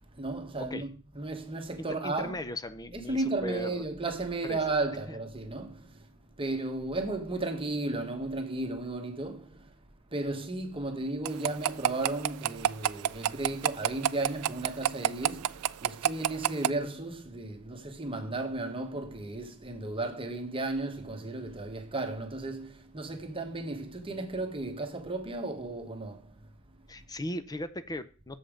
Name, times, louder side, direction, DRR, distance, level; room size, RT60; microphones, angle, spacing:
voice 1, 0.1-2.4 2.9-9.8 10.1-26.5, right 2 dB, 25° right, 1.2 m, -34 dB
voice 2, 2.0-3.8 4.4-4.6 5.1-5.2 26.9-28.4, left 1 dB, 15° left, 0.6 m, -37 dB
Old Pocketwatch Loop, 11.2-16.7, right 10 dB, 85° right, 0.3 m, -26 dB
7.2 x 5.4 x 5.1 m
head